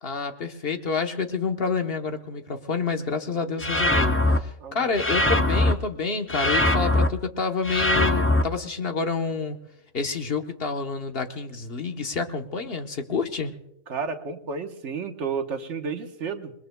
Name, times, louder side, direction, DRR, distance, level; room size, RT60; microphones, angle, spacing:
voice 1, 0.0-9.6 9.9-13.5, left 4 dB, 55° left, 5 dB, 1.3 m, -28 dB
sound 1, 3.6-4.4 4.9-5.7 6.3-7.1 7.6-8.4, left 1 dB, 15° left, 0.5 m, -21 dB
voice 2, 4.6-4.9 13.9-16.5, right 5 dB, 75° right, 5 dB, 1.4 m, -31 dB
28.0 x 21.0 x 2.2 m, 0.85 s
omnidirectional pair, 1.2 m